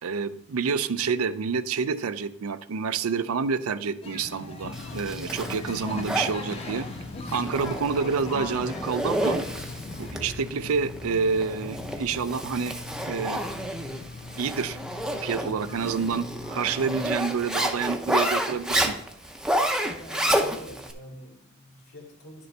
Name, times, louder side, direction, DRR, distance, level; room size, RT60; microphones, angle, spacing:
voice 1, 0.0-6.9 7.3-9.4 10.0-12.7 13.1-13.4 14.4-14.8 15.2-19.0, right 5 dB, 80° right, 12 dB, 0.5 m, -28 dB
sound 1, 4.0-10.1, left 2 dB, 30° left, 1.1 m, -39 dB
sound 2, 4.6-17.2, left 4 dB, 50° left, 0.4 m, -42 dB
Zipper (clothing), 4.7-20.9, equal, 5° right, 0.6 m, -30 dB
voice 2, 20.0-22.5, left 1 dB, 85° left, -2 dB, 2.5 m, -45 dB
10.5 x 6.8 x 3.3 m, 0.69 s
head